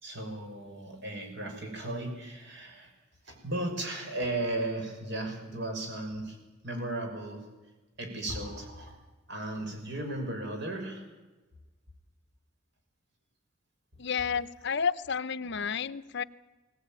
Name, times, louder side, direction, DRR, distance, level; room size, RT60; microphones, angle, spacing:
voice 1, 0.0-2.9 3.2-6.4 6.6-7.5 8.0-9.0 9.3-11.1, right 1 dB, 60° right, 3 dB, 5.7 m, -35 dB
voice 2, 14.0-16.2, left 6 dB, 60° left, 14 dB, 0.8 m, -31 dB
22.5 x 17.5 x 8.9 m, 1.2 s
head